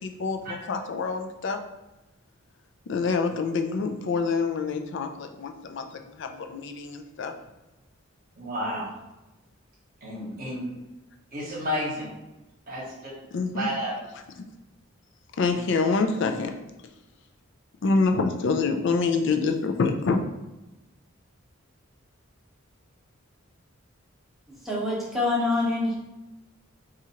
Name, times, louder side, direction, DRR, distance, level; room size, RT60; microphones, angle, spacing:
voice 1, 0.0-1.6 2.9-5.9 6.2-7.3 13.3-13.7 15.4-16.5 17.8-20.2, left 4 dB, 60° left, 5 dB, 0.4 m, -26 dB
voice 2, 8.4-8.9 10.0-10.6 11.3-12.1 12.7-12.8 13.5-14.0, equal, 40° right, -5 dB, 1.0 m, -31 dB
voice 3, 24.6-26.0, left 2 dB, ahead, -6 dB, 0.9 m, -25 dB
4.3 x 2.4 x 2.8 m, 1.0 s
head